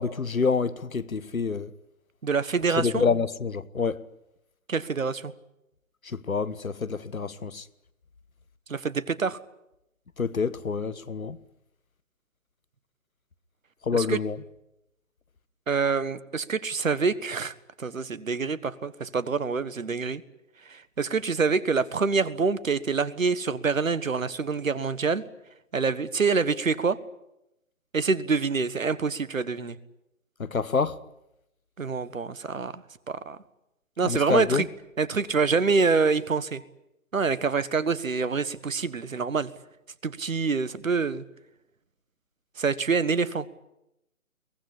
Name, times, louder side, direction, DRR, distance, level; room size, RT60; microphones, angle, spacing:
voice 1, 0.0-1.7 2.8-4.0 6.0-7.7 10.2-11.4 13.8-14.4 30.4-31.0 34.0-34.7, left 5 dB, 75° left, 1.4 m, -27 dB
voice 2, 2.2-3.0 4.7-5.3 8.7-9.4 13.9-14.2 15.7-20.2 20.6-25.2 25.7-27.0 27.9-29.8 31.8-33.4 34.0-34.7 35.0-36.6 37.1-39.5 40.0-41.2 42.6-43.5, right 4 dB, 65° right, 1.5 m, -26 dB
23.0 x 18.5 x 10.0 m
figure-of-eight pair, 145°, 42 cm